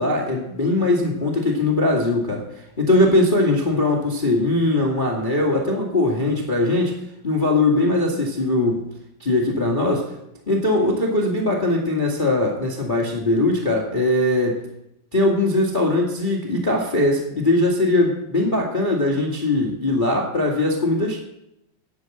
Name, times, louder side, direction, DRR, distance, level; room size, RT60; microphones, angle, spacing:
voice 1, 0.0-2.4 2.8-6.9 7.2-8.8 9.2-10.0 10.5-14.6 15.1-21.2, left 2 dB, 35° left, -1 dB, 0.8 m, -20 dB
11.0 x 9.9 x 7.9 m, 0.83 s
omnidirectional pair, 4.8 m